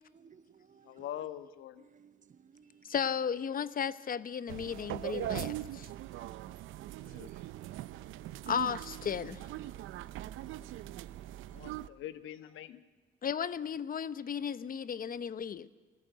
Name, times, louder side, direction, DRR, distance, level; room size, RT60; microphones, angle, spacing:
voice 1, 0.1-1.0 1.8-2.9 6.3-8.5 10.2-11.8, right 7 dB, 40° right, 0.9 m, -62 dB
voice 2, 0.8-1.9 7.0-7.3 11.5-12.9, left 11 dB, 85° left, 1.2 m, -44 dB
voice 3, 2.8-5.9 8.5-9.4 13.2-15.7, left 7 dB, 45° left, 0.9 m, -35 dB
sound 1, 4.5-11.9, right 14 dB, 85° right, 0.7 m, -41 dB
24.0 x 18.0 x 8.0 m
cardioid pair, 90°, 20 cm